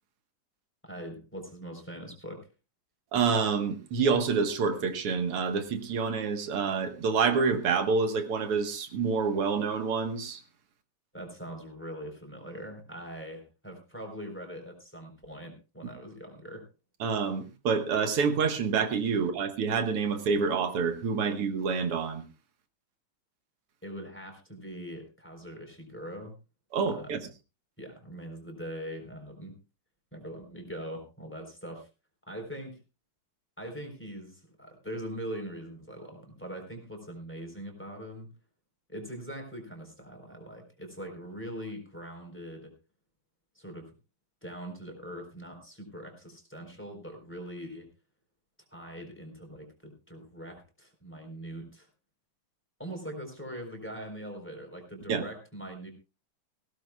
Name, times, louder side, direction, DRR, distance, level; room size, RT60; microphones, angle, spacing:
voice 1, 0.8-2.5 11.1-16.7 23.8-26.4 26.9-27.2 27.8-29.6 30.1-31.9 32.3-32.8 33.6-38.3 38.9-42.7 43.5-43.9 44.4-47.9 48.7-51.9 52.8-55.9, equal, 5° left, 3 dB, 3.8 m, -42 dB
voice 2, 3.1-10.4 17.0-22.2 26.7-27.2 55.1-55.2, right 5 dB, 85° right, 7 dB, 2.4 m, -27 dB
19.0 x 16.5 x 2.3 m, 0.30 s
omnidirectional pair, 2.4 m